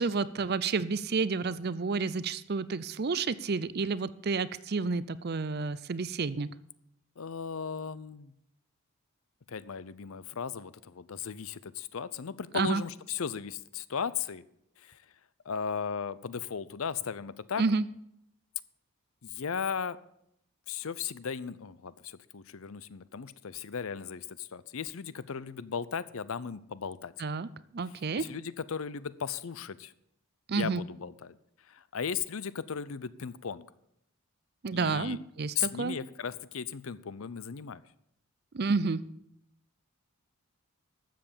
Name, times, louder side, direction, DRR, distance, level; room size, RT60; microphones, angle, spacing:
voice 1, 0.0-6.5 12.5-12.8 17.6-17.8 27.2-27.5 27.7-28.2 30.5-30.8 34.6-36.0 38.5-39.0, right 4 dB, 45° right, 17 dB, 0.5 m, -30 dB
voice 2, 7.2-8.3 9.5-14.4 14.8-15.0 15.4-17.6 19.2-20.0 20.7-27.1 28.2-29.9 30.5-31.4 31.7-33.7 34.7-35.2 35.5-37.8, left 6 dB, 70° left, 17 dB, 0.6 m, -36 dB
13.0 x 7.7 x 6.8 m, 0.76 s
head